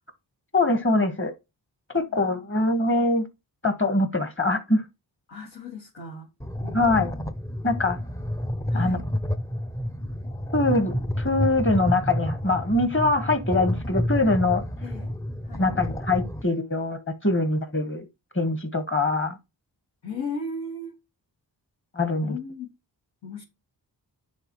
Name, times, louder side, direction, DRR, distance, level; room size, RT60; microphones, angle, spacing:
voice 1, 0.5-1.3 1.9-3.2 3.6-4.8 6.7-7.1 7.6-8.0 8.7-9.0 10.5-14.6 15.6-18.1 18.3-19.4 21.9-22.4, left 2 dB, 30° left, 1.4 m, -23 dB
voice 2, 2.1-2.5 5.3-6.3 6.6-7.3 7.7-7.9 8.7-9.1 14.8-15.1 15.4-15.7 20.0-20.9 22.1-22.7 23.2-23.4, left 3 dB, 90° left, 2.4 m, -37 dB
sound 1, 6.4-16.4, left 1 dB, 10° left, 0.5 m, -30 dB
10.5 x 4.1 x 3.1 m
wide cardioid pair, 80°, 42 cm